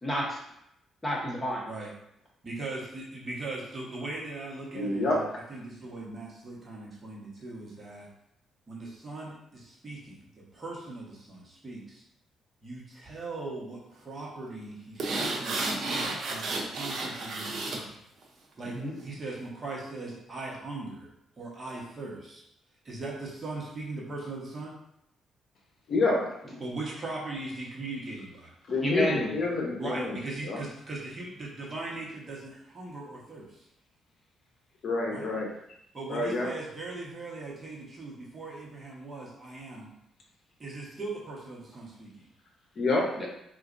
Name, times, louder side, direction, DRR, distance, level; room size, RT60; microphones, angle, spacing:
voice 1, 0.0-0.4 1.0-1.7 18.6-19.0 28.8-29.4 43.2-43.3, equal, 15° left, -2 dB, 1.0 m, -30 dB
voice 2, 2.4-8.1 8.7-10.3 10.5-12.0 12.6-15.8 16.3-18.0 18.6-21.1 21.3-22.4 22.8-24.7 26.6-28.5 29.8-33.6 35.1-35.3 35.9-39.9 40.6-42.3, right 2 dB, 35° right, -4 dB, 1.1 m, -39 dB
voice 3, 4.7-5.2 25.9-26.2 28.7-30.2 30.4-30.6 34.8-35.5 36.1-36.5 42.8-43.1, left 2 dB, 55° left, -1 dB, 0.8 m, -27 dB
sound 1, 15.0-17.8 18.2-18.3, right 2 dB, 65° right, 0.7 m, -32 dB
4.2 x 2.5 x 2.5 m, 0.78 s
cardioid pair, 90°, 0 cm